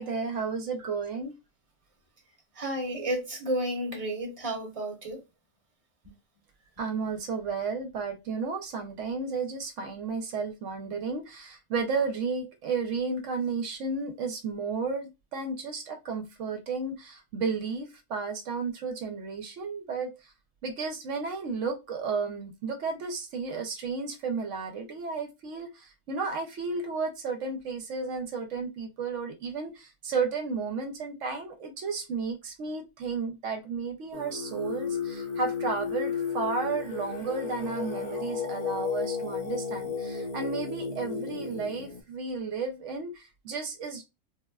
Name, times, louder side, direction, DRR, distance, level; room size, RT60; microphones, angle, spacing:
voice 1, 0.0-1.3 6.8-20.3 20.6-44.0, right 4 dB, 75° right, 0.9 m, -33 dB
voice 2, 2.6-5.2, right 1 dB, 30° right, 0.9 m, -31 dB
Singing, 34.1-42.0, left 6 dB, 40° left, 0.6 m, -33 dB
3.6 x 2.1 x 2.2 m
omnidirectional pair, 1.3 m